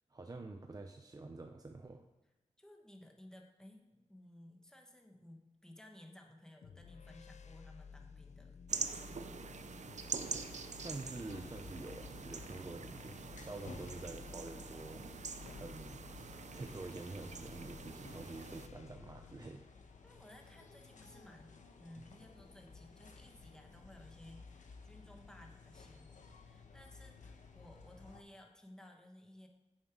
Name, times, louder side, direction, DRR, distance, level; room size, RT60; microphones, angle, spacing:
voice 1, 0.1-2.0 10.7-15.0 15.6-16.0 16.5-19.7, right 3 dB, 30° right, 5 dB, 0.6 m, -47 dB
voice 2, 2.6-9.8 15.2-15.6 20.0-29.5, left 1 dB, 5° left, 2 dB, 1.3 m, -58 dB
sound 1, 6.6-19.4, left 6 dB, 65° left, 0.4 m, -55 dB
sound 2, 8.7-18.7, right 5 dB, 70° right, 0.6 m, -45 dB
sound 3, 10.1-28.2, left 4 dB, 90° left, 1.0 m, -56 dB
9.5 x 7.4 x 4.7 m, 1.0 s
wide cardioid pair, 115°, 13 cm